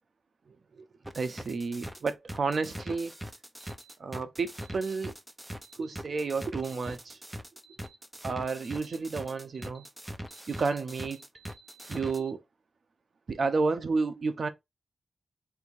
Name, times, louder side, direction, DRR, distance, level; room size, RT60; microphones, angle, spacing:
sound 1, 1.0-12.2, equal, 10° right, 0.6 m, -41 dB
voice 1, 1.2-3.1 4.0-5.1 5.8-7.2 8.2-9.8 10.5-11.2 11.9-12.4 13.3-14.5, right 4 dB, 60° right, 0.7 m, -31 dB
sound 2, 3.6-3.9 4.6-4.9 5.6-5.9 6.6-6.9 7.6-7.9 8.6-9.0 9.5-9.9 10.3-10.6 10.9-12.3, right 3 dB, 70° left, 1.3 m, -57 dB
3.5 x 2.7 x 4.6 m
wide cardioid pair, 120°, 0 cm